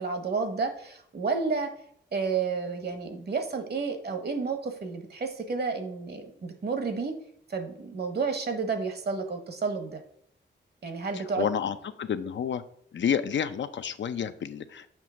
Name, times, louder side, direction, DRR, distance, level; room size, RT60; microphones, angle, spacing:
voice 1, 0.0-1.7 2.1-7.1 7.5-10.0 10.8-11.5, right 4 dB, 55° right, 6 dB, 1.2 m, -31 dB
voice 2, 11.1-12.6 12.9-14.9, left 8 dB, 75° left, 11 dB, 0.5 m, -30 dB
7.4 x 3.1 x 6.1 m, 0.66 s
wide cardioid pair, 100°, 19 cm